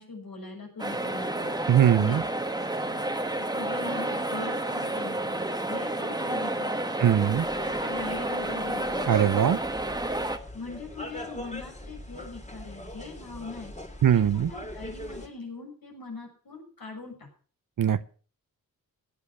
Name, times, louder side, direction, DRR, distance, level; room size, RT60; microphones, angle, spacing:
voice 1, 0.0-2.2 2.5-7.2 7.6-9.4 10.5-13.7 14.1-17.3, left 3 dB, 75° left, 6.4 m, -41 dB
sound 1, 0.8-10.4, right 1 dB, 10° right, 1.3 m, -30 dB
voice 2, 1.7-2.2 7.0-7.5 9.1-9.6 14.0-14.5 17.8-18.1, right 9 dB, 65° right, 0.7 m, -21 dB
sound 2, 7.0-15.3, left 1 dB, 20° left, 2.4 m, -42 dB
16.5 x 10.0 x 6.1 m
wide cardioid pair, 90°, 35 cm